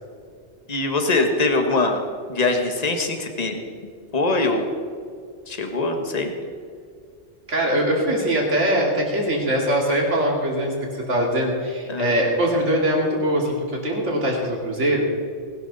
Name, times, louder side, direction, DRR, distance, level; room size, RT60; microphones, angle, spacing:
voice 1, 0.7-3.6 4.1-4.7 5.5-6.3 11.9-12.1, left 2 dB, 35° left, 5 dB, 1.6 m, -22 dB
voice 2, 7.5-15.1, right 1 dB, 85° right, -1 dB, 3.0 m, -22 dB
19.5 x 12.5 x 4.1 m, 2.2 s
omnidirectional pair, 1.2 m